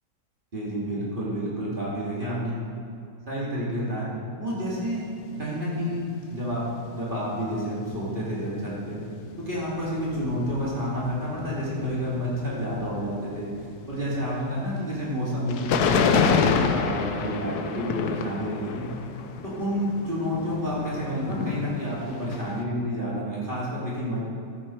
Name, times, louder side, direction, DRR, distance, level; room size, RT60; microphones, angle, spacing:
voice 1, 0.5-2.6 3.3-4.1 4.4-6.0 6.3-9.0 9.4-13.5 13.8-18.9 19.4-24.2, equal, 35° right, -7 dB, 2.6 m, -29 dB
sound 1, 4.7-4.9 5.6-5.7 6.1-6.2 6.5-6.6 9.1-22.6, left 6 dB, 80° left, 1.3 m, -29 dB
13.5 x 9.6 x 4.5 m, 2.4 s
omnidirectional pair, 1.7 m